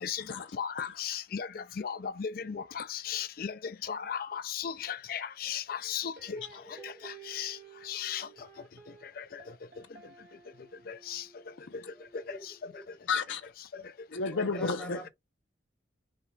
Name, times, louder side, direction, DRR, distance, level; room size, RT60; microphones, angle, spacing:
voice 1, 0.6-3.5 3.8-6.4 6.8-7.6 7.9-8.3 10.9-11.2 14.8-14.9, left 8 dB, 50° left, 0.4 m, -36 dB
voice 2, 4.9-5.2 5.7-5.9 6.6-7.0 12.0-12.9 14.3-15.1, right 1 dB, 5° left, 1.0 m, -48 dB
sound 1, 6.2-13.3, right 6 dB, 50° right, 1.5 m, -54 dB
voice 3, 13.1-13.4 14.1-15.0, left 4 dB, 75° left, 0.7 m, -31 dB
5.6 x 2.4 x 3.1 m
head